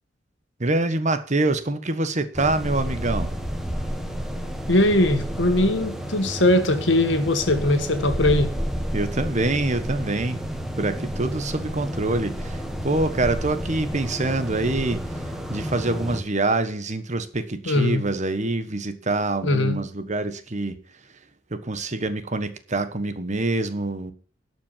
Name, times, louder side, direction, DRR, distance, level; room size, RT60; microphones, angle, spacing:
voice 1, 0.6-3.3 8.9-10.4 10.8-15.0 15.5-20.8 21.5-24.1, right 2 dB, 40° right, 1.3 m, -25 dB
sound 1, 2.3-16.2, equal, ahead, 1.6 m, -31 dB
voice 2, 4.7-8.5 17.7-18.1 19.4-19.8, left 1 dB, 75° left, 1.9 m, -20 dB
12.5 x 6.0 x 7.4 m
head